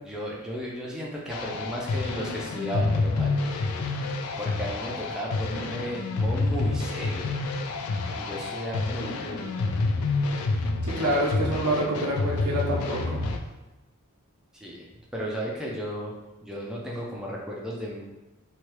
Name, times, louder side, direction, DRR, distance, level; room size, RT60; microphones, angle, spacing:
voice 1, 0.0-3.4 4.4-7.3 8.2-9.5 14.6-14.9 15.1-16.1 16.4-18.1, equal, 5° right, -4 dB, 0.4 m, -34 dB
sound 1, 1.3-13.4, left 3 dB, 75° left, 0.3 m, -28 dB
voice 2, 10.8-13.2, right 1 dB, 80° right, -4 dB, 0.8 m, -26 dB
2.8 x 2.2 x 3.1 m, 1.0 s
head